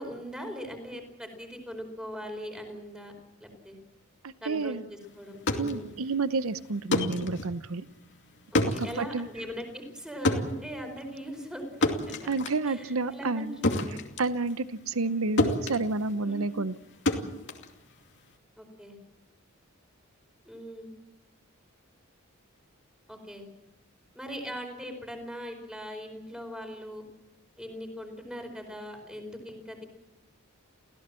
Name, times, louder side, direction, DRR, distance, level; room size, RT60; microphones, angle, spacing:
voice 1, 0.0-3.1 3.4-3.8 4.4-5.9 8.5-12.3 12.7-13.7 16.2-16.6 18.6-19.0 20.4-20.9 23.1-23.5 24.1-27.0 27.6-29.9, equal, 5° right, 4 dB, 4.8 m, -40 dB
voice 2, 4.2-4.8 5.6-7.8 8.8-9.3 12.2-13.6 14.2-16.7, right 3 dB, 70° right, 14 dB, 0.8 m, -30 dB
sound 1, 5.2-15.1 15.4-18.3, left 1 dB, 60° left, 2.6 m, -31 dB
29.5 x 16.0 x 7.6 m, 0.96 s
head